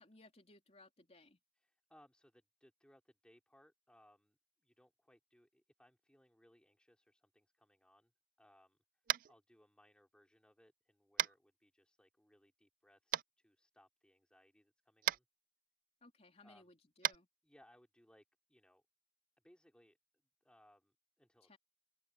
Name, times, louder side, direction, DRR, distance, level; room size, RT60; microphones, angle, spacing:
voice 1, 0.0-1.4 16.0-17.3 21.4-21.6, left 2 dB, 35° left, 3.4 m, -62 dB
voice 2, 1.5-8.1 8.4-8.8 9.3-15.2 16.4-16.7 17.4-18.2 18.5-18.8 19.4-20.0 20.4-21.6, equal, 5° left, 3.2 m, -68 dB
Tap, 9.1-9.3 11.2-11.3 13.1-13.2 15.0-15.2 17.0-17.2, right 12 dB, 50° right, 0.3 m, -34 dB
open air
head